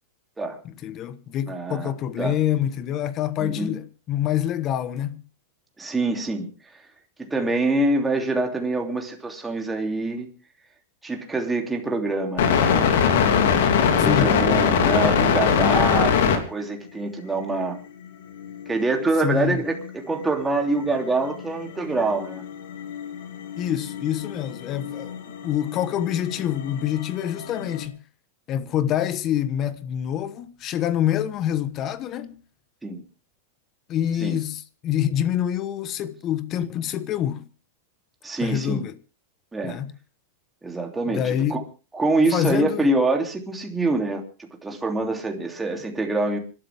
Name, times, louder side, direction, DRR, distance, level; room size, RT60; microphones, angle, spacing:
voice 1, 0.6-5.2 14.0-14.4 19.2-19.6 23.6-27.9 28.5-32.4 33.9-37.4 38.4-39.0 39.6-39.9 41.0-41.6 42.3-42.9, left 11 dB, 30° left, 1.1 m, -26 dB
voice 2, 1.5-1.9 2.2-2.3 3.4-3.7 5.8-6.8 7.2-10.3 11.0-13.0 13.9-17.8 18.7-22.4 23.7-23.8 32.8-33.0 34.2-34.4 38.2-38.8 39.5-39.8 40.6-41.6 41.9-46.4, right 2 dB, 10° right, 2.9 m, -25 dB
sound 1, 12.4-16.4 17.4-17.6 18.3-20.4 20.7-27.8, left 7 dB, 70° left, 2.9 m, -23 dB
26.5 x 12.5 x 3.5 m
supercardioid pair, 145°, 0 cm